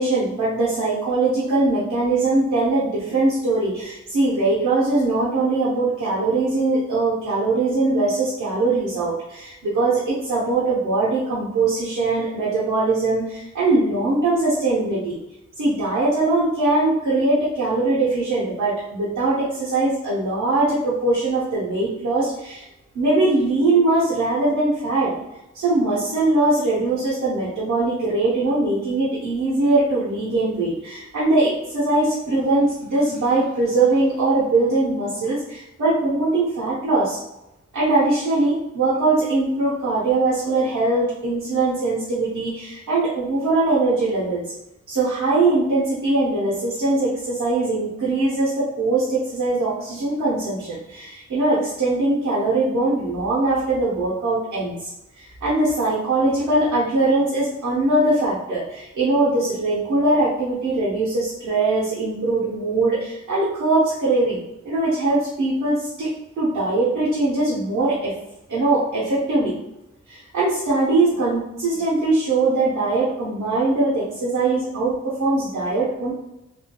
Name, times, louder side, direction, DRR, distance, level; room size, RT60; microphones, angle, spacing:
voice 1, 0.0-15.2 15.6-22.7 22.9-25.1 25.5-37.2 37.7-44.4 44.9-54.9 55.2-64.4 64.6-66.1 66.4-68.1 68.5-69.5 70.1-76.1, right 2 dB, 80° right, -8 dB, 0.9 m, -21 dB
3.5 x 2.3 x 2.2 m, 0.90 s
wide cardioid pair, 170°, 29 cm